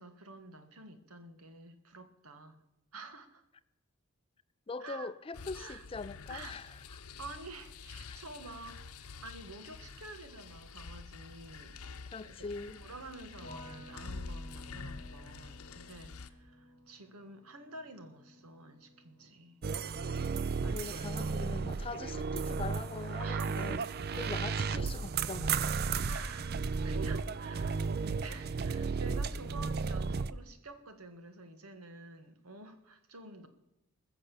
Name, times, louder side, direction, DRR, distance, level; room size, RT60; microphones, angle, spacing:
voice 1, 0.0-2.6 2.9-3.4 4.8-5.1 5.5-5.9 6.3-11.8 12.2-12.3 12.8-19.6 20.6-21.5 23.2-23.8 26.0-27.8 28.2-33.5, right 3 dB, 90° right, 1.7 m, -49 dB
voice 2, 4.7-6.8 8.1-8.2 12.1-12.9 20.6-23.8 24.1-25.8, left 3 dB, 25° left, 0.4 m, -42 dB
sound 1, 5.3-16.3, left 4 dB, 90° left, 0.8 m, -47 dB
sound 2, 13.4-24.5 24.7-25.5, equal, 60° right, 3.5 m, -56 dB
sound 3, 19.6-30.3, right 5 dB, 45° right, 0.4 m, -34 dB
20.5 x 6.9 x 7.0 m
head